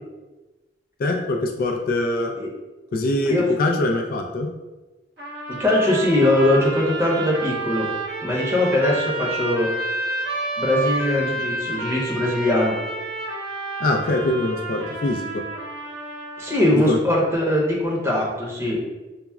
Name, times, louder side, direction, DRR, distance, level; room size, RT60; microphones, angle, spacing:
voice 1, 1.0-2.3 2.9-3.3 3.6-4.5 13.8-15.4 16.9-17.0, left 2 dB, 50° left, 2 dB, 0.3 m, -23 dB
sound 1, 5.2-16.7, right 2 dB, 65° right, 1.0 m, -30 dB
voice 2, 5.6-7.9 8.2-9.7 10.6-12.7 16.4-18.8, left 1 dB, 15° right, -4 dB, 0.8 m, -21 dB
5.7 x 2.0 x 2.3 m, 1.1 s
head